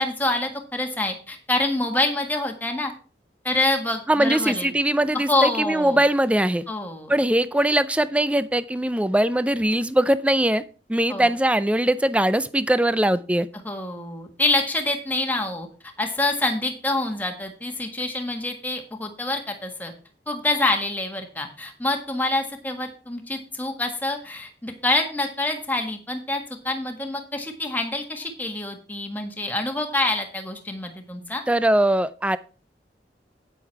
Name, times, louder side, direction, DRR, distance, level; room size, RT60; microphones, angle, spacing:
voice 1, 0.0-2.9 3.4-4.7 5.1-6.0 6.7-7.1 11.1-11.3 13.6-15.7 16.0-19.9 20.3-31.4, left 2 dB, 10° left, 3 dB, 1.6 m, -26 dB
voice 2, 4.1-6.6 7.1-10.6 10.9-13.5 31.5-32.4, right 1 dB, 5° right, 15 dB, 0.4 m, -21 dB
9.1 x 8.3 x 4.6 m, 0.37 s
head